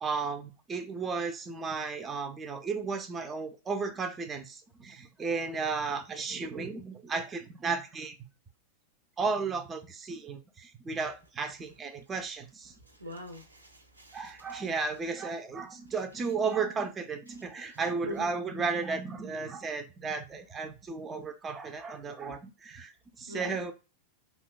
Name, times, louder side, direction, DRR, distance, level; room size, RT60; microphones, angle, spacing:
voice 1, 0.0-8.2 9.2-12.7 14.1-23.7, right 4 dB, 20° right, 0.4 m, -34 dB
voice 2, 12.9-14.6 18.1-18.3 23.3-23.6, equal, 85° right, 0.5 m, -43 dB
2.7 x 2.1 x 2.3 m
figure-of-eight pair, 90°, 0 cm